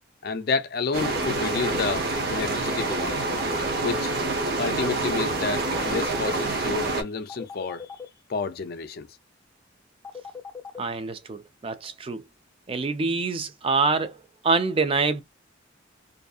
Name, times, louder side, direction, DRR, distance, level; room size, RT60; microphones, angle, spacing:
voice 1, 0.2-3.2 3.8-4.1 4.6-7.8 8.3-9.1, left 4 dB, 50° left, 0.4 m, -30 dB
sound 1, 0.9-7.0, right 2 dB, 50° right, 0.8 m, -27 dB
sound 2, 1.0-1.8 2.8-3.5 5.5-6.3 7.3-8.0 10.0-10.8, left 6 dB, 10° left, 0.7 m, -38 dB
voice 2, 10.8-12.2 12.7-15.2, right 4 dB, 30° right, 0.4 m, -26 dB
2.6 x 2.5 x 2.3 m
head